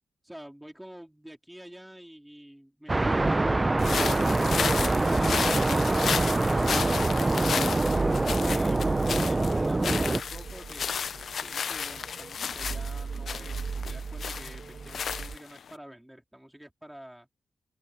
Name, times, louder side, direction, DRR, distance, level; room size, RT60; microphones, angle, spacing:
voice 1, 0.2-3.7 8.5-11.0 11.4-17.3, equal, 5° right, 4.2 m, -48 dB
sound 1, 2.9-10.2, right 2 dB, 20° right, 0.7 m, -24 dB
sound 2, 3.8-15.7, left 7 dB, 70° left, 0.7 m, -33 dB
sound 3, 5.6-15.4, right 5 dB, 55° right, 3.1 m, -39 dB
open air
wide cardioid pair, 100°, 0 cm